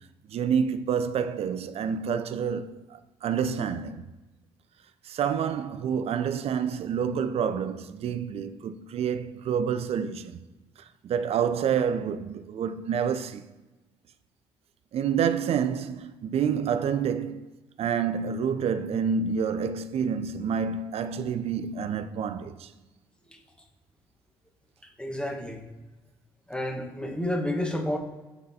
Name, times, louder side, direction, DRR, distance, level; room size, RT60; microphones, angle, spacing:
voice 1, 0.3-4.1 5.0-10.4 10.8-13.5 14.9-17.5 17.8-22.7, right 7 dB, 50° right, 0.4 m, -28 dB
voice 2, 25.0-25.6 26.5-28.0, left 1 dB, 10° left, 1.3 m, -30 dB
9.6 x 3.8 x 2.8 m
hypercardioid pair, 45°, 13 cm